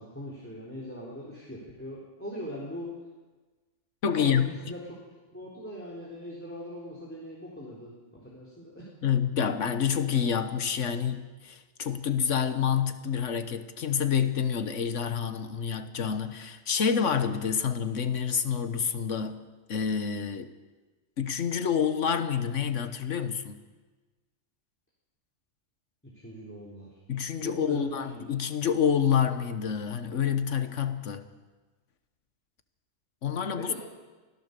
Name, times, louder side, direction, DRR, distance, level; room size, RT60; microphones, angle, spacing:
voice 1, 0.0-2.9 4.1-5.0 5.3-7.9 8.2-8.9 26.1-26.9 27.4-28.1 33.6-33.7, equal, 10° left, 3.8 m, -40 dB
voice 2, 4.0-4.5 9.0-19.4 19.7-20.5 21.2-23.6 27.1-31.3 33.2-33.7, left 7 dB, 90° left, 1.5 m, -28 dB
25.0 x 16.5 x 6.8 m
omnidirectional pair, 1.2 m